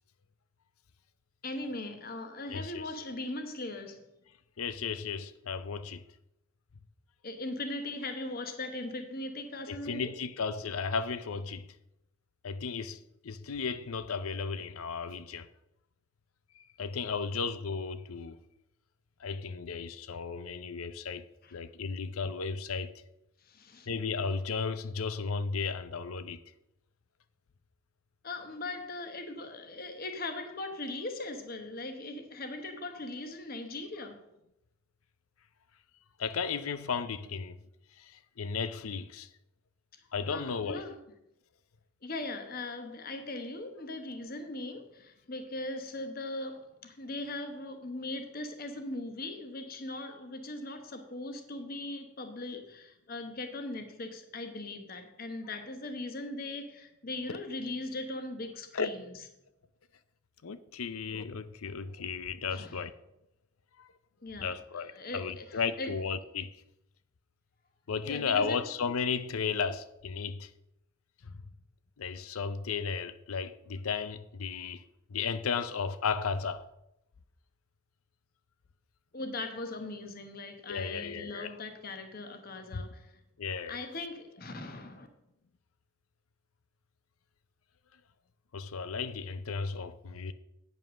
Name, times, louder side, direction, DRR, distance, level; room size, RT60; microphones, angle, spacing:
voice 1, 1.4-4.1 7.2-10.1 21.4-21.5 23.4-23.9 28.2-34.2 40.3-41.0 42.0-59.1 62.5-62.7 64.2-65.9 68.0-68.6 79.1-83.2 83.7-85.1, left 2 dB, 45° left, 1.1 m, -39 dB
voice 2, 2.5-2.9 4.6-6.0 9.7-11.7 12.4-15.5 16.6-18.4 19.2-21.3 21.5-22.9 23.9-26.4 36.2-37.6 38.0-39.3 40.1-40.9 58.7-58.9 60.4-63.0 63.8-63.9 64.4-66.5 67.9-70.5 71.2-71.4 72.0-74.8 75.1-76.6 80.7-81.6 82.7-82.8 83.4-83.8 88.5-90.3, left 5 dB, 85° left, 0.6 m, -34 dB
9.1 x 5.4 x 6.2 m
head